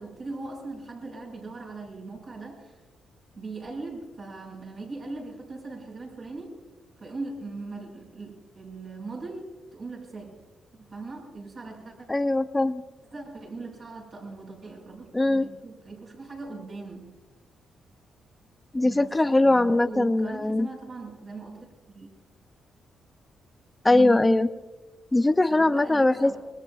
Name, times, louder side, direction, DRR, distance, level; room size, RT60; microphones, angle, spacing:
voice 1, 0.0-2.8 3.3-6.6 7.0-10.4 10.7-12.1 13.1-17.2 18.8-19.1 19.4-22.1 23.9-24.4 25.5-26.4, right 3 dB, 45° right, -3 dB, 6.1 m, -40 dB
voice 2, 12.1-12.8 15.1-15.5 18.7-20.7 23.8-24.5 25.1-26.4, left 2 dB, 15° left, 11 dB, 0.6 m, -21 dB
26.5 x 21.5 x 2.5 m, 1.2 s
cardioid pair, 125°, 0 cm